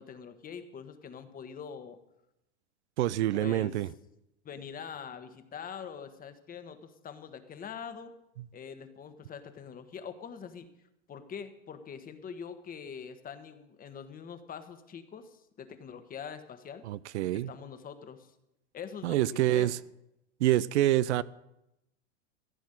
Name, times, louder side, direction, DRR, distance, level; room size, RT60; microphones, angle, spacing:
voice 1, 0.0-2.0 3.3-3.7 4.4-8.1 8.5-10.7 11.1-16.8 17.3-18.3 18.7-19.7, left 7 dB, 25° left, 1.3 m, -44 dB
voice 2, 3.0-3.9 16.9-17.5 19.0-19.8 20.4-21.2, right 14 dB, 75° right, 0.6 m, -26 dB
15.0 x 6.1 x 9.0 m
hypercardioid pair, 110°, 34 cm